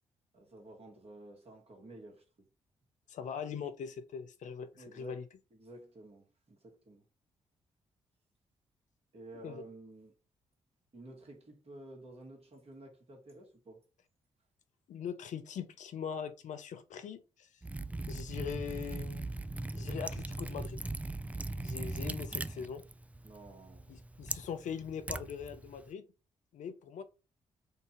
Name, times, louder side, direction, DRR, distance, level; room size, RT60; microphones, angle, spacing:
voice 1, 0.3-2.5 4.8-5.2 5.5-7.1 9.1-10.1 10.9-13.8 23.2-23.9, right 2 dB, 45° right, 2.1 m, -52 dB
voice 2, 3.1-5.2 9.4-9.7 14.9-17.5 18.1-19.3 19.7-20.8 21.6-22.8 23.9-26.0 26.5-27.0, left 7 dB, 60° left, 0.6 m, -41 dB
Liquid, 17.6-25.9, right 2 dB, 10° right, 0.3 m, -40 dB
3.8 x 2.7 x 4.4 m
hypercardioid pair, 40°, 14 cm